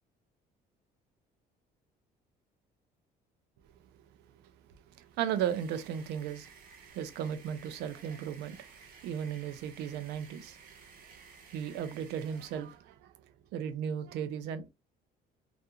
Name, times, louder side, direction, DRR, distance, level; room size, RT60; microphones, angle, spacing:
voice 1, 4.9-11.1 11.5-13.1 13.5-14.7, right 9 dB, 85° right, 0.4 m, -36 dB
sound 1, 5.0-12.8, right 5 dB, 55° right, 0.8 m, -55 dB
2.4 x 2.3 x 2.7 m
cardioid pair, 110°, 17 cm